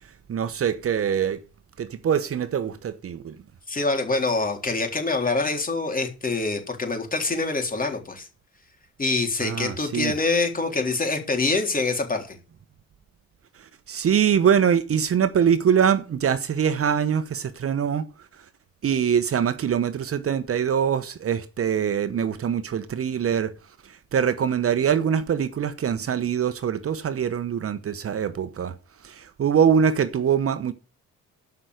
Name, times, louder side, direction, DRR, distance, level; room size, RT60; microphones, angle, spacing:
voice 1, 0.3-1.4 1.8-3.3 9.4-10.1 13.9-18.1 18.8-23.5 24.1-28.7 29.0-30.7, right 8 dB, 50° right, 1.1 m, -23 dB
voice 2, 3.7-8.3 9.0-12.4, left 3 dB, 30° left, 3.7 m, -25 dB
13.0 x 5.9 x 8.0 m
cardioid pair, 90°, 30 cm